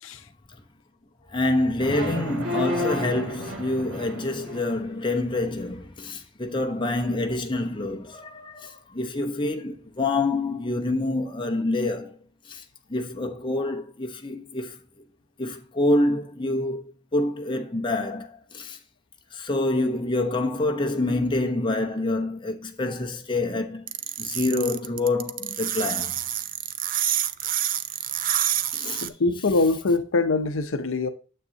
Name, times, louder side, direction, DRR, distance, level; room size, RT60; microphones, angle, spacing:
voice 1, 1.3-12.2 12.4-12.6 12.9-14.8 15.4-16.8 17.1-18.8 19.3-23.8 24.2-26.1 28.7-29.1, left 2 dB, 25° left, 1.0 m, -27 dB
sound 1, 1.8-4.8, left 1 dB, 90° right, 2.2 m, -31 dB
sound 2, 23.9-29.1, right 11 dB, 40° right, 0.5 m, -27 dB
voice 2, 29.0-31.1, left 3 dB, 70° left, 0.7 m, -23 dB
9.5 x 7.7 x 2.8 m
head